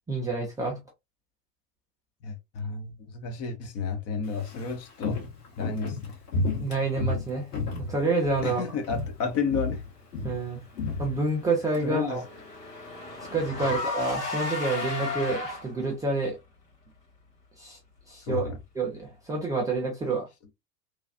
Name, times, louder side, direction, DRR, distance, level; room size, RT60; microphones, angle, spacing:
voice 1, 0.1-0.8 6.6-8.6 10.2-10.6 11.0-12.2 13.3-16.4 17.6-17.8 18.1-18.4 18.8-20.3, right 3 dB, 10° right, 0.5 m, -28 dB
voice 2, 2.2-5.2 5.6-6.2 8.4-9.8 11.8-12.2 13.6-13.8 18.3-18.6, left 5 dB, 30° left, 0.7 m, -31 dB
Walk footsteps, 4.2-8.6 8.8-9.2 9.5-11.8 12.1-12.2, left 3 dB, 70° left, 1.7 m, -32 dB
Car / Engine, 10.9-15.9, left 2 dB, 85° left, 1.5 m, -34 dB
3.2 x 2.3 x 2.5 m
figure-of-eight pair, 85°, 48 cm